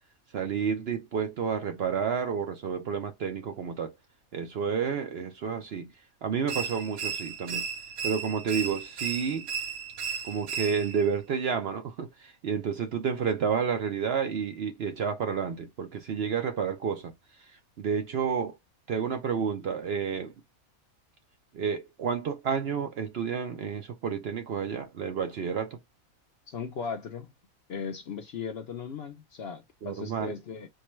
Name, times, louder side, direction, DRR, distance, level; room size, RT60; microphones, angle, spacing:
voice 1, 0.3-3.9 4.3-5.9 6.2-7.6 8.0-9.5 10.2-17.1 17.8-18.6 18.9-20.3 21.5-25.8 29.8-30.3, right 6 dB, 60° right, 0.7 m, -30 dB
sound 1, 6.5-11.1, right 6 dB, 80° right, 1.2 m, -35 dB
voice 2, 26.5-27.3 27.7-30.7, left 6 dB, 60° left, 0.7 m, -37 dB
4.5 x 2.1 x 3.0 m
omnidirectional pair, 1.5 m